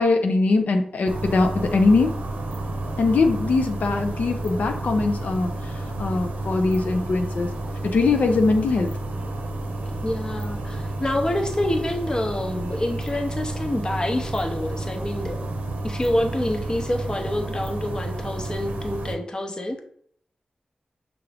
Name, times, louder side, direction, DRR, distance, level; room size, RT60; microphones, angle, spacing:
voice 1, 0.0-2.1 3.0-5.7 6.0-7.5 7.8-8.9, left 3 dB, 80° left, 4 dB, 0.5 m, -21 dB
sound 1, 1.1-19.2, right 2 dB, 85° right, 0.6 m, -31 dB
voice 2, 10.0-15.5 15.8-19.8, left 1 dB, 30° left, 4 dB, 0.6 m, -27 dB
5.8 x 2.5 x 3.3 m, 0.64 s
wide cardioid pair, 100°, 3 cm